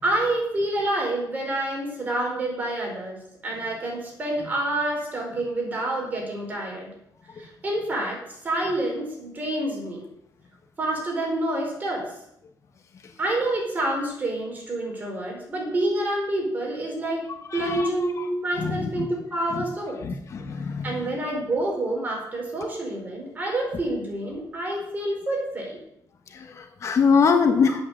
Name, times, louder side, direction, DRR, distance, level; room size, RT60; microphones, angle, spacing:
voice 1, 0.0-6.9 7.4-10.0 10.8-12.1 13.2-17.2 17.5-20.0 20.8-25.8 27.5-27.8, right 1 dB, 25° right, -1 dB, 4.6 m, -28 dB
voice 2, 17.5-17.9 18.6-19.1 20.0-20.8 26.8-27.7, left 5 dB, 45° left, 5 dB, 1.1 m, -22 dB
9.8 x 8.7 x 6.7 m, 0.77 s
cardioid pair, 155°, 7 cm